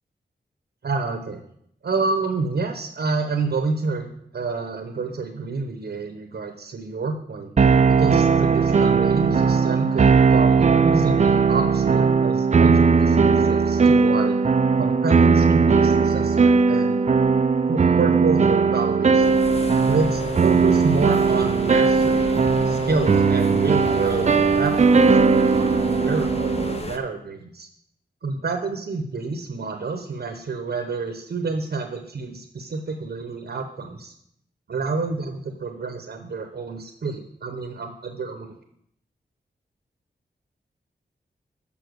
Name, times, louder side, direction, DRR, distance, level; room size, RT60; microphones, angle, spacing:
voice 1, 0.8-1.4 1.8-7.5 7.9-14.4 14.8-17.0 17.7-19.4 19.8-22.3 22.6-27.7 28.2-34.1 34.7-38.5, right 4 dB, 65° right, 5 dB, 0.9 m, -28 dB
sound 1, 7.6-26.8, right 5 dB, 40° right, 0.4 m, -18 dB
sound 2, 19.2-27.0, left 3 dB, 35° left, 0.8 m, -33 dB
7.0 x 5.5 x 6.3 m, 0.73 s
wide cardioid pair, 70°, 18 cm